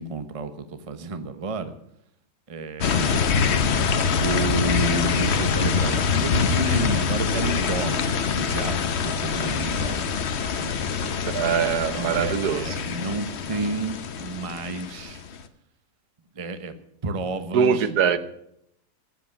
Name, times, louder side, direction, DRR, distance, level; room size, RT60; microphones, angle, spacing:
voice 1, 0.0-1.7 2.5-3.4 4.2-10.1 10.6-11.1 11.9-15.2 16.3-16.7 17.0-17.9, right 3 dB, 25° right, 10 dB, 0.8 m, -31 dB
sound 1, 2.8-15.4, left 6 dB, 50° left, 1.0 m, -25 dB
voice 2, 11.3-12.8 17.5-18.2, right 7 dB, 80° right, 12 dB, 1.4 m, -23 dB
15.0 x 7.8 x 7.1 m, 0.77 s
omnidirectional pair, 1.7 m